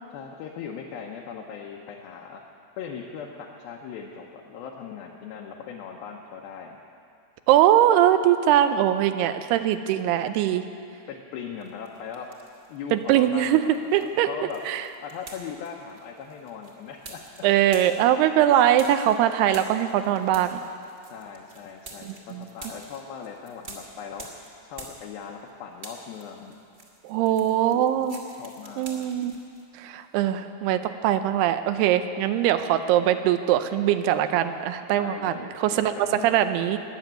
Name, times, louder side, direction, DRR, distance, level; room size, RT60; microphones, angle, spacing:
voice 1, 0.1-2.4 2.8-6.8 11.1-12.3 12.7-14.6 15.0-17.2 21.1-24.3 24.6-26.6 27.4-28.1 28.4-29.1 35.0-35.5 35.8-36.6, left 7 dB, 75° left, -1 dB, 2.6 m, -39 dB
voice 2, 7.5-10.6 12.9-13.6 13.9-14.3 14.7-14.9 17.4-20.6 22.1-22.5 27.0-28.2 28.8-29.4 29.7-35.9 36.2-36.8, right 11 dB, 85° right, 10 dB, 2.6 m, -22 dB
sound 1, 11.6-12.8 13.1-25.5 25.7-29.6, right 2 dB, 35° right, 1.5 m, -47 dB
20.5 x 7.1 x 9.0 m, 2.4 s
omnidirectional pair, 4.7 m